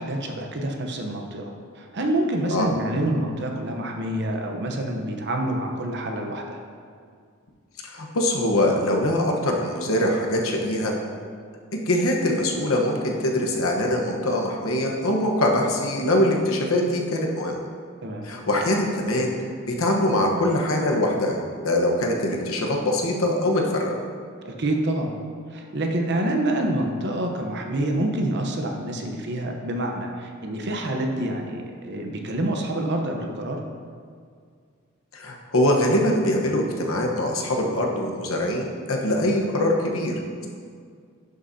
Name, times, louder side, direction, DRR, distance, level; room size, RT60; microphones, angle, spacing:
voice 1, 0.0-6.6 18.0-18.3 24.4-25.1 25.5-33.6, right 1 dB, 55° right, 2 dB, 0.9 m, -27 dB
voice 2, 7.8-10.9 11.9-17.6 18.2-19.3 19.7-21.4 21.6-23.9 35.1-40.1, left 1 dB, 80° left, 0 dB, 1.1 m, -23 dB
10.5 x 6.6 x 2.8 m, 2.1 s
head